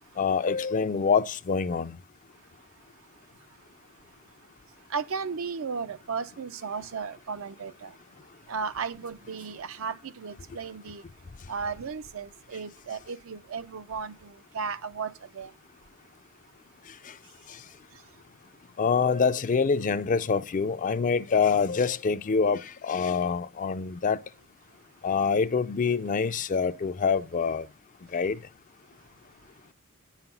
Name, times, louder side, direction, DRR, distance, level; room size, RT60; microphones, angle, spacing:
voice 1, 0.2-2.0 18.8-24.2 25.0-27.7 28.1-28.4, left 5 dB, 40° left, 0.4 m, -25 dB
voice 2, 4.9-7.9 8.5-11.0 11.5-15.5, right 5 dB, 70° right, 0.5 m, -35 dB
9.8 x 5.7 x 5.7 m
head